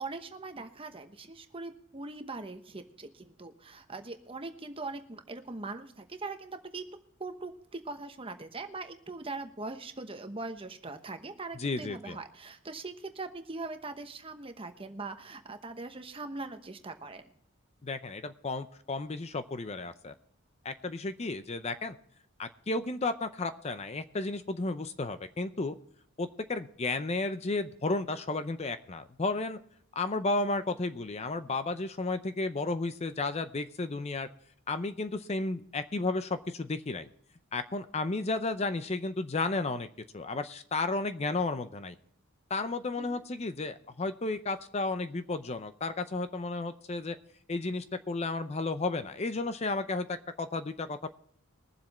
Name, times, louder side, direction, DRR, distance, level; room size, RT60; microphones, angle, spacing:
voice 1, 0.0-6.8 7.2-17.2 43.0-43.2, right 3 dB, 25° right, 7 dB, 1.0 m, -41 dB
voice 2, 11.6-12.2 17.8-20.1 20.6-22.0 22.4-25.7 26.2-29.6 30.0-34.3 34.7-37.1 37.5-39.9 40.1-41.9 42.5-47.2 47.5-51.1, left 3 dB, 30° left, 10 dB, 0.5 m, -33 dB
21.5 x 7.5 x 4.2 m, 0.64 s
head